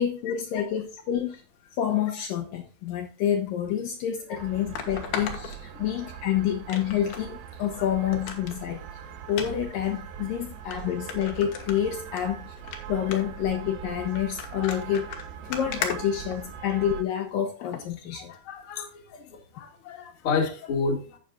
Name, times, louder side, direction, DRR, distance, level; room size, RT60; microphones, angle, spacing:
voice 1, 0.0-1.4 1.8-8.8 9.3-12.5 12.9-15.1 15.5-18.3, left 10 dB, 70° left, 2.5 m, -28 dB
sound 1, 3.7-3.8 4.7-6.2 6.7-7.3 7.6-7.7 8.1-8.6 9.3-9.5 10.2-10.3 10.7-10.8 11.1-12.2 12.6-12.8 13.1-13.4 14.2-16.8 17.6-17.8 18.3-18.4, left 7 dB, 90° left, 3.4 m, -36 dB
sound 2, 4.3-17.0, right 9 dB, 75° right, 2.8 m, -41 dB
voice 2, 18.1-21.2, left 4 dB, 40° left, 2.2 m, -31 dB
12.0 x 8.3 x 2.4 m
omnidirectional pair, 4.5 m